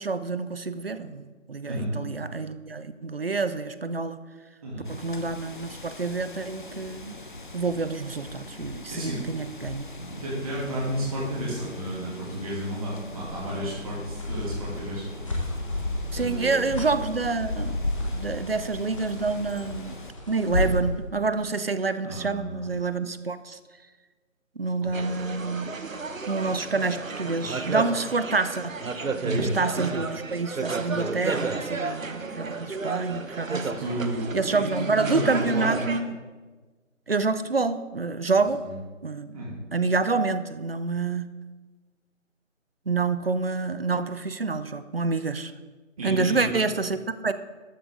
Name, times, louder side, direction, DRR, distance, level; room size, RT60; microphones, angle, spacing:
voice 1, 0.0-4.2 4.9-7.1 7.5-9.8 16.1-17.8 18.1-19.9 20.3-23.6 24.6-25.7 26.3-28.8 29.4-33.7 34.3-36.1 37.1-38.6 39.0-39.4 39.7-41.3 42.9-45.5 46.0-47.3, right 4 dB, 50° right, 13 dB, 0.6 m, -27 dB
sound 1, 4.9-20.1, left 2 dB, 40° left, 0.7 m, -37 dB
voice 2, 8.9-9.2 10.1-15.0 16.1-16.7 22.0-22.7 24.8-25.2 29.2-29.5 33.7-35.7 38.6-38.7 39.3-39.5 46.0-46.5, right 1 dB, 25° right, -7 dB, 2.6 m, -32 dB
sound 2, 12.9-21.0, left 1 dB, 25° left, 1.2 m, -35 dB
sound 3, 24.9-36.0, right 4 dB, 80° right, 1.1 m, -32 dB
12.5 x 8.2 x 3.7 m, 1.3 s
figure-of-eight pair, 165°, 39 cm